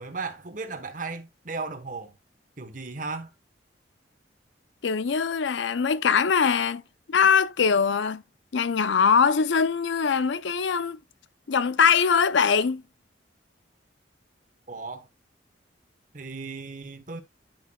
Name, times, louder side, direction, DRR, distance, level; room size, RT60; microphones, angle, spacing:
voice 1, 0.0-2.1 2.6-3.3 14.7-15.1 16.1-17.2, right 4 dB, 45° right, 1.1 m, -36 dB
voice 2, 4.8-6.8 7.1-8.2 8.5-11.0 11.5-12.8, left 6 dB, 75° left, 0.5 m, -22 dB
10.5 x 5.7 x 2.3 m
head